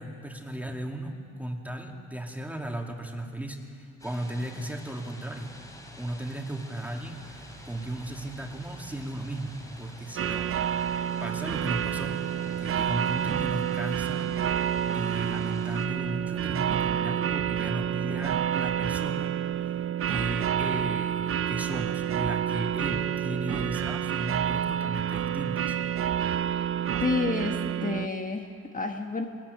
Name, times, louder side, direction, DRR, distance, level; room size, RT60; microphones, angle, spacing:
voice 1, 0.0-5.6 5.9-10.9 11.2-19.3 19.6-19.8 20.1-25.8, right 1 dB, 5° right, 2 dB, 2.4 m, -36 dB
sound 1, 4.0-15.9, left 1 dB, 10° left, 3.1 m, -48 dB
sound 2, 6.8-14.3, right 5 dB, 85° right, 2.4 m, -52 dB
sound 3, 10.2-28.1, right 9 dB, 45° right, 0.6 m, -29 dB
voice 2, 27.0-29.2, left 4 dB, 25° left, 3 dB, 1.5 m, -30 dB
21.0 x 13.5 x 9.7 m, 2.6 s
cardioid pair, 90°, 30 cm